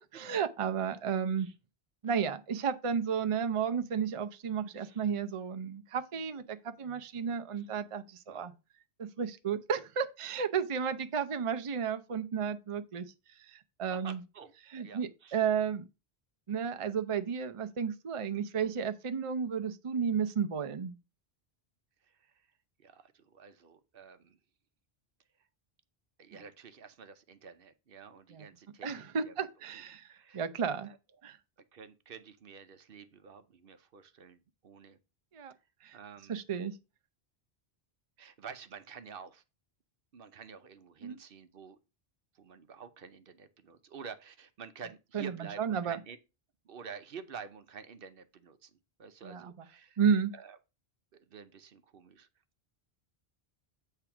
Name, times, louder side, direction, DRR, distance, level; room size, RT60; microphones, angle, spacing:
voice 1, 0.0-1.5 2.0-8.5 9.0-13.1 13.4-14.2 14.7-15.9 16.5-21.0 28.3-28.4 28.8-30.1 30.3-30.9 31.2-31.4 35.3-35.5 35.8-36.0 36.3-36.8 41.0-41.2 45.1-46.0 49.2-49.7 50.0-50.3, right 7 dB, 40° right, 0.6 m, -33 dB
voice 2, 4.7-5.1 7.5-7.7 8.3-8.4 13.9-14.5 14.8-15.5 22.0-22.5 22.8-24.4 26.2-29.3 29.7-29.8 30.1-30.5 30.8-31.0 31.7-35.0 35.9-36.4 38.2-39.4 40.1-41.8 42.3-46.2 46.6-48.7 49.0-50.0 50.3-50.6 51.1-52.3, right 6 dB, 65° right, 0.9 m, -49 dB
8.5 x 3.4 x 5.8 m
omnidirectional pair, 1.0 m